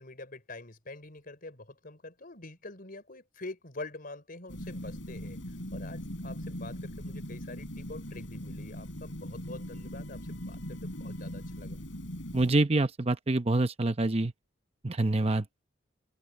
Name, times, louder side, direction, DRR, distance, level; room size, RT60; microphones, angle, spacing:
voice 1, 0.0-11.8, left 2 dB, 50° left, 4.4 m, -45 dB
sound 1, 4.5-12.5, equal, 80° left, 6.5 m, -40 dB
voice 2, 12.3-14.3 14.8-15.4, right 2 dB, 35° right, 0.8 m, -26 dB
head